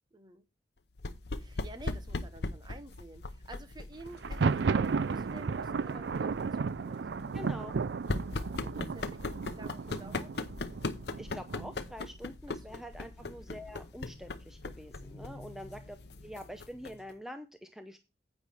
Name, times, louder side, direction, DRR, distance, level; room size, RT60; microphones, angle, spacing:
voice 1, 0.1-0.4 1.3-7.4 8.5-10.3 10.7-10.8 12.5-12.8 13.2-13.4 15.7-15.9, right 2 dB, 25° right, 9 dB, 0.9 m, -51 dB
sound 1, 1.0-17.1, left 2 dB, 65° left, 0.8 m, -40 dB
Thunder, 4.1-11.9, right 5 dB, 70° right, 0.4 m, -33 dB
voice 2, 7.3-7.8 11.2-16.0 16.2-18.0, equal, ahead, 7 dB, 0.6 m, -45 dB
9.5 x 8.4 x 3.4 m, 0.27 s
head